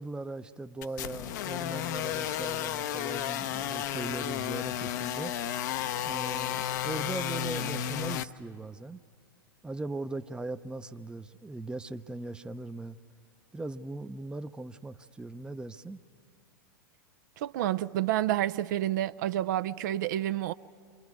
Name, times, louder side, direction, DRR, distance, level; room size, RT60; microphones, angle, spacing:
voice 1, 0.0-5.3 6.0-9.0 9.6-13.0 13.5-16.0, right 2 dB, 10° right, 0.6 m, -39 dB
sound 1, 0.8-8.3, left 11 dB, 55° left, 0.7 m, -33 dB
voice 2, 17.4-20.5, right 13 dB, 60° right, 0.4 m, -29 dB
29.0 x 25.0 x 4.8 m
hypercardioid pair, 95°, 11 cm